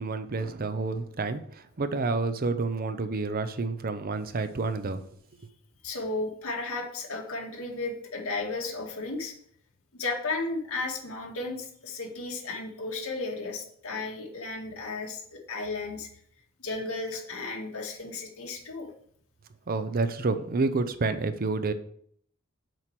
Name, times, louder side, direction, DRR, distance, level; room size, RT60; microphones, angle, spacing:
voice 1, 0.0-5.0 19.7-21.7, right 3 dB, 45° right, 11 dB, 0.6 m, -29 dB
voice 2, 5.8-9.3 9.9-16.1 16.6-18.9, left 3 dB, 70° left, -1 dB, 2.0 m, -34 dB
7.6 x 4.6 x 5.9 m, 0.63 s
head